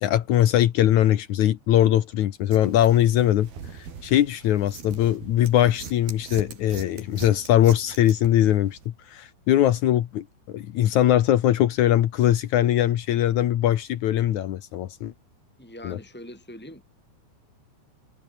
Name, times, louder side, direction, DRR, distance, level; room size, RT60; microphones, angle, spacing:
voice 1, 0.0-3.5 4.0-15.1 15.8-16.0, left 12 dB, 85° left, 1.6 m, -21 dB
sound 1, 2.5-8.9, right 6 dB, 55° right, 6.2 m, -42 dB
voice 2, 15.6-16.8, left 1 dB, ahead, 7.3 m, -42 dB
omnidirectional pair, 5.3 m